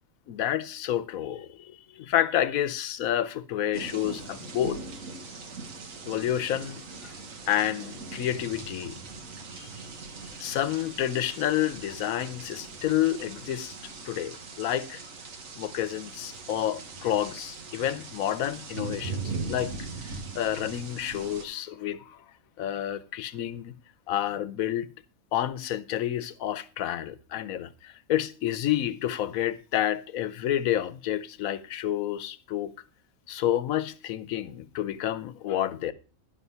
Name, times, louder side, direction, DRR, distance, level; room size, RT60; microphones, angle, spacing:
voice 1, 0.3-4.8 6.1-7.1 7.5-9.0 9.5-9.7 10.4-15.1 15.6-19.2 19.5-19.7 20.0-22.2 22.6-23.8 24.1-24.9 25.3-32.7 33.3-35.9, left 11 dB, 90° left, 1.1 m, -29 dB
sound 1, 3.7-21.5, right 4 dB, 75° right, 1.7 m, -40 dB
11.0 x 5.8 x 5.5 m
omnidirectional pair, 1.4 m